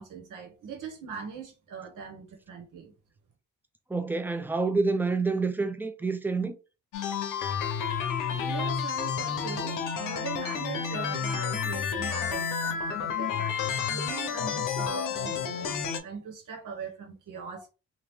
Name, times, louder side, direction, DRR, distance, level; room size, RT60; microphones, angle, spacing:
voice 1, 0.0-2.9 8.3-17.7, right 6 dB, 80° right, 1.2 m, -41 dB
voice 2, 3.9-6.5, right 3 dB, 5° right, 0.5 m, -28 dB
sound 1, 6.9-16.0, left 7 dB, 85° left, 0.7 m, -30 dB
2.9 x 2.4 x 3.4 m
cardioid pair, 75°, 31 cm